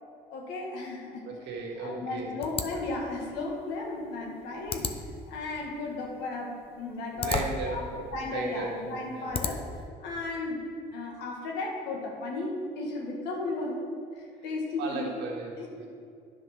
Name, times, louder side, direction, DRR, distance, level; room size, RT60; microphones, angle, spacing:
voice 1, 0.3-1.3 1.8-4.9 5.3-9.6 10.0-13.8 14.1-15.1 15.6-15.9, left 2 dB, 90° left, 0 dB, 1.9 m, -35 dB
voice 2, 1.2-2.4 7.1-7.8 8.3-8.8 9.2-9.3 14.8-15.9, right 3 dB, 85° right, -1 dB, 1.9 m, -35 dB
sound 1, 2.4-9.9, left 5 dB, 35° left, 0.7 m, -37 dB
10.0 x 5.4 x 5.9 m, 2.4 s
cardioid pair, 110°, 17 cm